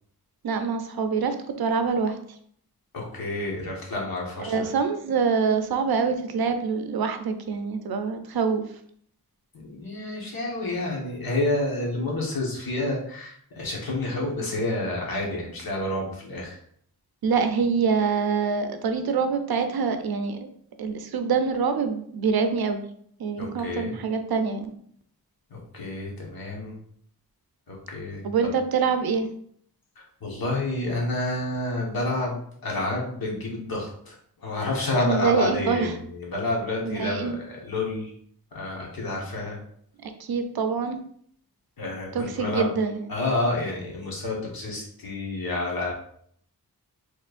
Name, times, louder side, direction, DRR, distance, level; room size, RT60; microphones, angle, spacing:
voice 1, 0.4-2.2 4.5-8.6 17.2-20.4 20.8-22.8 23.2-24.7 28.2-29.3 35.0-36.0 36.8-37.4 40.0-41.0 42.1-43.0, right 5 dB, 80° right, 7 dB, 0.5 m, -25 dB
voice 2, 2.9-4.6 9.5-16.6 23.4-23.9 25.5-26.7 27.7-28.2 30.2-34.1 34.4-38.1 38.5-39.6 41.8-42.7 43.1-45.9, left 2 dB, 70° left, -2 dB, 1.3 m, -29 dB
4.4 x 3.2 x 2.4 m, 0.64 s
wide cardioid pair, 140°, 37 cm